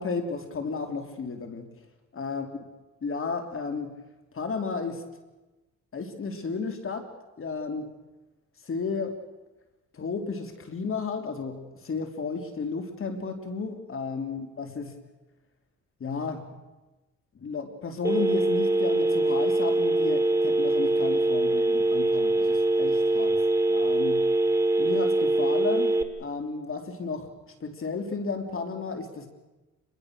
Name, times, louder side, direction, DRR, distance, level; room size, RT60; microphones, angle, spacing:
voice 1, 0.0-1.7 2.1-2.5 3.0-4.0 4.3-5.0 5.9-7.1 7.4-7.9 8.6-9.2 9.9-15.0 16.0-16.6 17.3-23.4 23.7-24.3 24.8-29.3, left 4 dB, 45° left, 6 dB, 3.4 m, -33 dB
Telephone, 18.0-26.0, right 2 dB, 10° right, 2.8 m, -23 dB
29.0 x 22.0 x 6.5 m, 1.1 s
cardioid pair, 90°, 30 cm